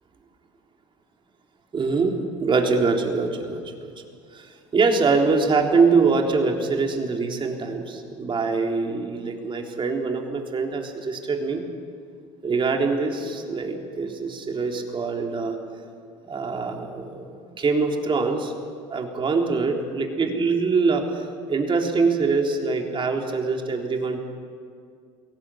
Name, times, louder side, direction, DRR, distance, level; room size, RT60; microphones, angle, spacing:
voice 1, 1.7-3.9 4.3-11.6 12.4-15.6 16.3-18.5 18.9-24.2, right 4 dB, 35° right, 2 dB, 3.7 m, -24 dB
22.0 x 17.5 x 8.6 m, 2.2 s
hypercardioid pair, 80°, 16 cm